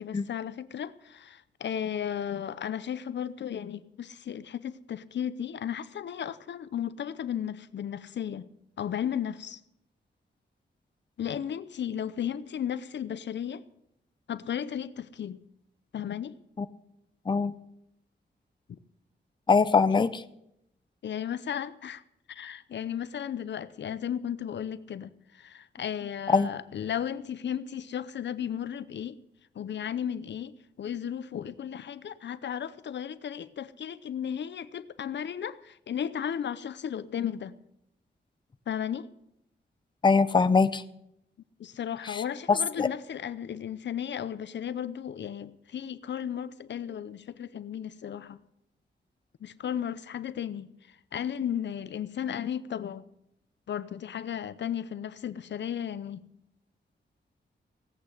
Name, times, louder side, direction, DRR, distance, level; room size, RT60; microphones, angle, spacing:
voice 1, 0.0-8.5 8.8-9.6 11.2-13.6 14.3-15.4 15.9-16.3 21.0-22.0 22.3-29.2 29.5-37.5 38.7-39.1 41.6-48.4 49.4-50.7 51.1-53.1 53.7-56.2, left 9 dB, 70° left, 15 dB, 0.7 m, -34 dB
voice 2, 19.5-20.2 26.3-26.5 40.0-40.8 42.1-42.2 42.5-42.9, left 4 dB, 25° left, 12 dB, 0.6 m, -22 dB
17.0 x 8.5 x 7.6 m, 0.79 s
wide cardioid pair, 130°, 19 cm